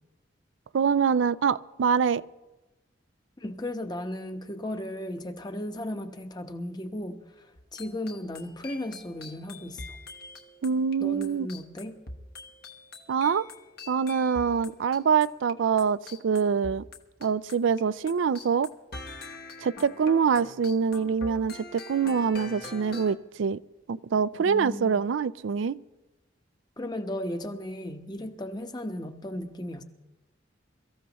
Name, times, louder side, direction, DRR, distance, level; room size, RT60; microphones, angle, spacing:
voice 1, 0.7-2.2 10.6-11.5 13.1-13.4 13.9-16.8 17.2-18.7 19.6-23.6 23.9-25.8, right 6 dB, 85° right, 16 dB, 0.4 m, -25 dB
voice 2, 3.4-10.0 11.0-12.0 24.4-24.9 26.8-29.8, left 1 dB, 20° left, 7 dB, 0.9 m, -35 dB
sound 1, 7.6-17.8 18.1-23.2, left 3 dB, 55° left, 1.1 m, -44 dB
24.0 x 14.0 x 3.0 m, 1.1 s
head